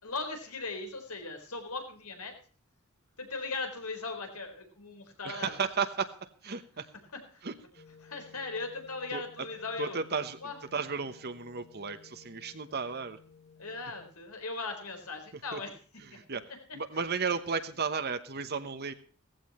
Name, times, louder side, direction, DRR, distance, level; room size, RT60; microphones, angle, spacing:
voice 1, 0.0-2.3 3.2-5.6 7.1-7.4 8.0-10.0 10.4-10.6 13.6-15.8 16.1-16.2 16.5-16.8, left 3 dB, 85° left, 5 dB, 4.2 m, -39 dB
voice 2, 5.2-6.9 7.4-7.8 9.1-9.2 9.8-10.4 10.7-13.2 15.5-15.6 16.1-16.5 16.7-18.9, right 5 dB, 45° right, 9 dB, 1.0 m, -34 dB
sound 1, 7.7-14.1, left 5 dB, 30° left, 0.9 m, -56 dB
17.0 x 15.0 x 3.0 m, 0.41 s
head